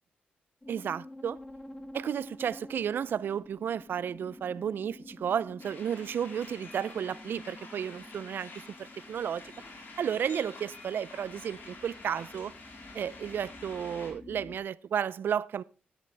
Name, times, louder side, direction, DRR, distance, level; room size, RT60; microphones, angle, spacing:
sound 1, 0.6-14.6, left 1 dB, 15° left, 1.9 m, -50 dB
voice 1, 0.7-1.4 1.9-8.5 8.8-9.5 10.0-12.5 12.9-15.6, right 8 dB, 65° right, 0.4 m, -33 dB
sound 2, 5.6-14.1, left 3 dB, 70° left, 4.0 m, -49 dB
13.0 x 10.0 x 3.4 m
supercardioid pair, 60°, 4 cm